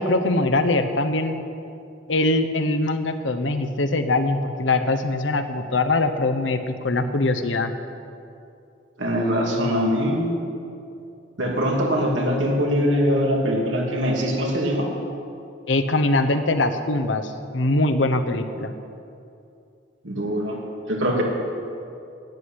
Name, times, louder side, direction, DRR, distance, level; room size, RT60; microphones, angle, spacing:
voice 1, 0.0-1.4 2.1-7.7 15.7-18.7, left 2 dB, 80° left, 8 dB, 1.0 m, -22 dB
voice 2, 9.0-10.4 11.4-14.9 20.0-20.6 20.9-21.2, equal, 85° right, -1 dB, 2.7 m, -22 dB
12.0 x 10.0 x 8.7 m, 2.6 s
head